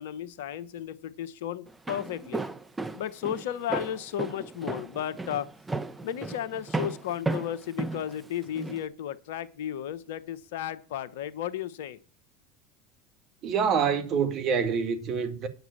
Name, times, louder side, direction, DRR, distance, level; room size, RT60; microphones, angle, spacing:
voice 1, 0.0-2.4 2.9-5.5 6.0-12.0, left 10 dB, 75° left, 0.9 m, -34 dB
Walk footsteps, 1.7-8.8, right 3 dB, 15° right, 1.1 m, -34 dB
voice 2, 13.4-15.5, right 6 dB, 50° right, 1.8 m, -26 dB
9.3 x 6.0 x 8.3 m
hypercardioid pair, 85°, 0 cm